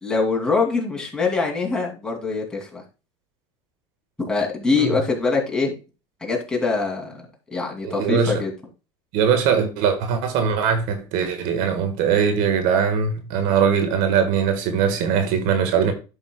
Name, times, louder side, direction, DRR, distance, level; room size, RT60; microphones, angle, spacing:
voice 1, 0.0-2.8 4.3-5.7 6.2-7.2 7.5-8.5, left 4 dB, 5° left, 2.6 m, -23 dB
voice 2, 7.8-8.3 9.1-15.9, right 7 dB, 70° right, 1.5 m, -21 dB
11.0 x 5.7 x 2.3 m
supercardioid pair, 115°, 14 cm